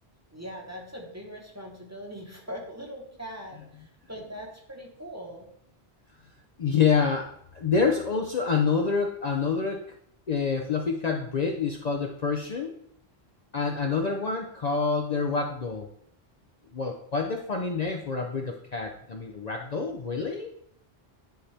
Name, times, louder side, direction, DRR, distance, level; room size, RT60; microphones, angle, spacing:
voice 1, 0.3-5.5 13.7-13.8, equal, 15° right, 0 dB, 1.1 m, -41 dB
voice 2, 6.6-7.3 7.5-10.0 10.3-12.7 13.5-15.9 16.7-20.5, left 5 dB, 45° left, 2 dB, 0.7 m, -27 dB
10.5 x 4.2 x 3.3 m, 0.68 s
omnidirectional pair, 1.0 m